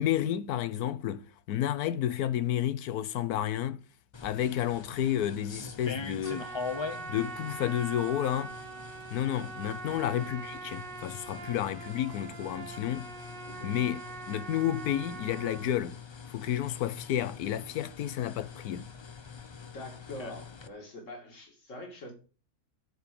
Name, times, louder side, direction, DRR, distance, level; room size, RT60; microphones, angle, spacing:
voice 1, 0.0-3.8 4.2-6.5 7.1-8.5 9.1-13.1 13.6-14.0 14.3-16.0 16.3-18.9, left 11 dB, 90° left, 1.2 m, -31 dB
sound 1, 4.1-20.7, left 5 dB, 35° left, 0.4 m, -44 dB
Trumpet, 6.2-15.7, right 4 dB, 40° right, 1.2 m, -43 dB
voice 2, 19.7-22.1, left 1 dB, 55° left, 2.8 m, -44 dB
10.5 x 4.9 x 6.7 m
omnidirectional pair, 1.6 m